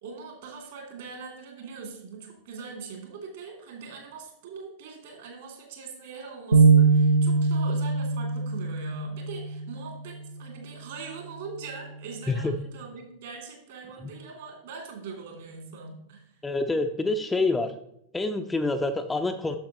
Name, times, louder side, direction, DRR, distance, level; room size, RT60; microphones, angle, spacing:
voice 1, 0.0-16.4, right 5 dB, 55° right, 2 dB, 2.6 m, -42 dB
sound 1, 6.5-10.0, right 4 dB, 75° right, 0.6 m, -22 dB
voice 2, 16.4-17.7 18.1-19.6, left 2 dB, 10° left, 6 dB, 0.5 m, -27 dB
8.8 x 7.2 x 3.0 m, 0.75 s
figure-of-eight pair, 90°, 0 cm